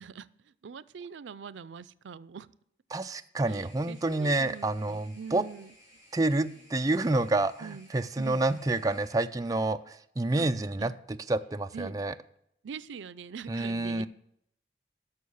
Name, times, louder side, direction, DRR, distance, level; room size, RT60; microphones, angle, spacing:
voice 1, 0.0-2.5 3.5-5.7 7.6-7.9 8.2-8.4 10.3-10.5 10.8-10.9 11.7-12.1 12.6-14.1, right 6 dB, 85° right, 18 dB, 0.4 m, -43 dB
voice 2, 2.9-5.4 6.1-12.1 13.5-14.1, right 2 dB, 20° right, 8 dB, 0.4 m, -28 dB
sound 1, 3.5-9.2, equal, 45° left, 4.7 m, -58 dB
11.0 x 6.5 x 7.0 m, 0.73 s
head